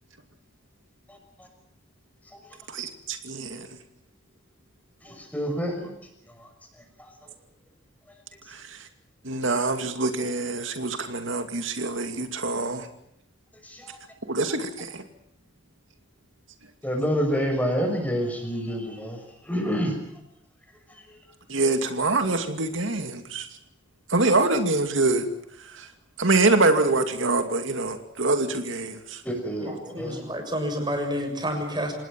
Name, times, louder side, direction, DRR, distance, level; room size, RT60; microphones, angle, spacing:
voice 1, 1.1-1.5 2.3-2.4 5.0-5.9 6.3-6.5 7.0-7.1 13.6-14.0 16.8-20.0 20.9-21.2 29.2-30.2, equal, 10° left, 4 dB, 6.1 m, -28 dB
voice 2, 2.7-3.7 8.5-8.9 9.2-12.9 14.2-15.0 21.5-23.5 24.1-25.3 25.6-25.9 26.2-29.2, right 3 dB, 85° right, 7 dB, 2.4 m, -25 dB
voice 3, 29.6-31.9, equal, 20° right, 4 dB, 6.8 m, -29 dB
27.0 x 19.5 x 7.5 m, 0.75 s
head